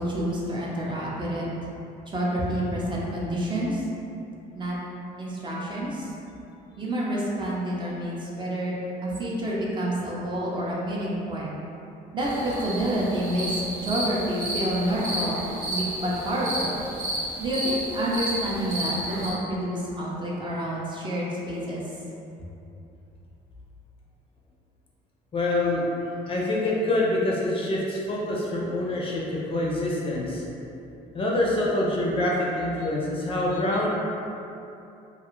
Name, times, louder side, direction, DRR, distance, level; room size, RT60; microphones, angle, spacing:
voice 1, 0.0-1.5 2.1-3.9 4.5-4.7 5.2-6.1 6.8-8.8 9.0-11.6 12.1-15.4 15.7-16.8 17.4-21.8, right 1 dB, 30° right, -5 dB, 0.5 m, -28 dB
sound 1, 12.2-19.3, right 1 dB, 60° right, 0.7 m, -32 dB
voice 2, 25.3-25.8 26.3-30.4 31.1-33.9, left 1 dB, 30° left, -4 dB, 0.5 m, -26 dB
2.4 x 2.3 x 3.0 m, 2.8 s
cardioid pair, 110°, 17 cm